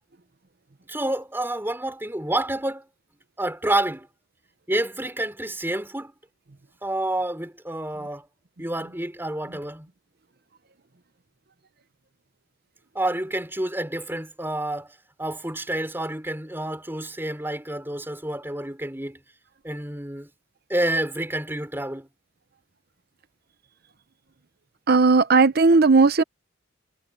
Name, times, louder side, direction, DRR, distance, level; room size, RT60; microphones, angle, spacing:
voice 1, 0.9-2.8 3.4-4.1 4.7-6.1 6.8-8.3 8.6-9.9 12.9-19.2 19.6-20.3 20.7-22.1, right 1 dB, 10° right, 4.0 m, -29 dB
voice 2, 24.9-26.2, right 4 dB, 50° right, 0.8 m, -16 dB
head